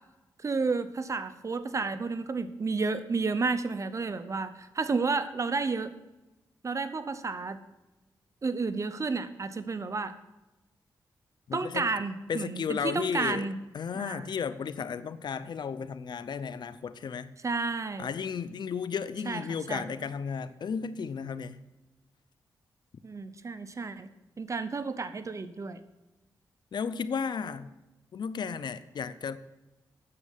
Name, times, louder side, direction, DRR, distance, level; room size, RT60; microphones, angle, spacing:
voice 1, 0.4-5.9 6.6-7.6 8.4-10.2 11.5-13.6 13.9-14.3 17.4-18.1 19.3-19.4 19.7-19.8 23.0-24.1 24.4-25.8, right 4 dB, 40° right, 11 dB, 0.9 m, -31 dB
voice 2, 11.5-11.9 12.3-13.5 13.7-17.3 18.0-21.6 26.7-27.7 28.1-29.4, left 6 dB, 65° left, 14 dB, 0.6 m, -34 dB
9.6 x 7.3 x 7.4 m, 1.0 s
cardioid pair, 70°, 8 cm